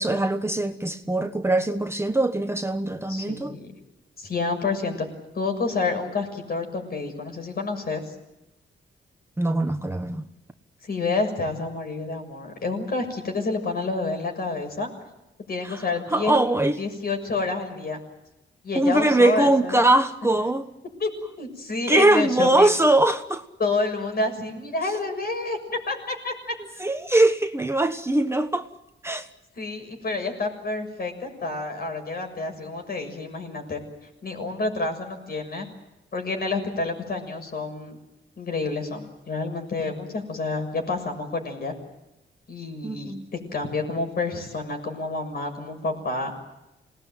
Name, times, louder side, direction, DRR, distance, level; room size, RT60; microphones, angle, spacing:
voice 1, 0.0-3.5 9.4-10.2 15.6-15.8 16.1-16.8 18.7-20.7 21.9-23.4 26.8-28.7 29.0-29.3 42.8-43.3, right 2 dB, 10° right, 7 dB, 1.2 m, -21 dB
voice 2, 3.1-3.7 4.2-5.1 5.3-8.0 10.8-14.9 15.5-16.4 16.8-18.0 18.6-19.9 21.0-21.1 21.4-22.8 23.6-25.6 25.9-26.5 29.6-33.8 34.2-35.7 36.1-38.0 38.4-41.7 42.5-43.1 43.5-46.3, left 3 dB, 50° left, 5 dB, 6.8 m, -29 dB
27.0 x 19.5 x 9.3 m, 0.93 s
wide cardioid pair, 120°, 20 cm